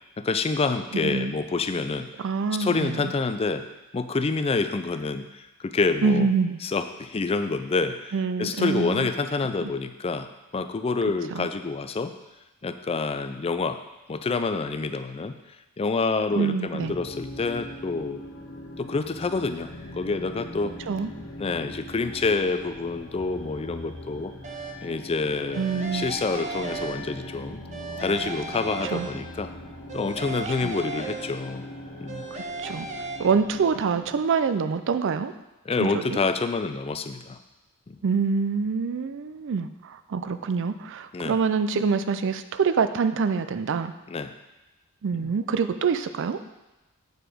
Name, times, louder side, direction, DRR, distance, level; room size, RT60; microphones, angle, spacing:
voice 1, 0.2-2.1 2.6-3.7 3.9-6.3 6.6-8.1 8.4-12.1 12.6-13.8 14.1-15.4 15.8-18.2 18.8-20.8 21.4-24.3 24.8-27.6 28.0-29.5 29.9-31.6 32.0-32.2 35.7-37.4 37.9-38.0 41.1-41.4 44.1-44.3 45.1-45.3, left 4 dB, 25° left, 10 dB, 0.4 m, -27 dB
voice 2, 0.9-1.3 2.2-3.1 6.0-6.6 8.1-9.1 11.3-11.5 16.4-16.9 20.9-21.1 25.6-26.1 28.9-29.1 30.6-30.7 32.3-32.9 33.2-35.3 35.8-36.2 38.0-43.9 45.0-46.4, right 5 dB, 55° right, 11 dB, 0.4 m, -26 dB
sound 1, 16.8-34.2, left 1 dB, 55° left, 1.4 m, -41 dB
sound 2, 24.4-25.0 25.5-27.4 27.7-29.5 29.9-31.7 32.1-33.2, right 3 dB, 30° right, 0.8 m, -36 dB
7.9 x 4.8 x 5.0 m, 1.0 s
head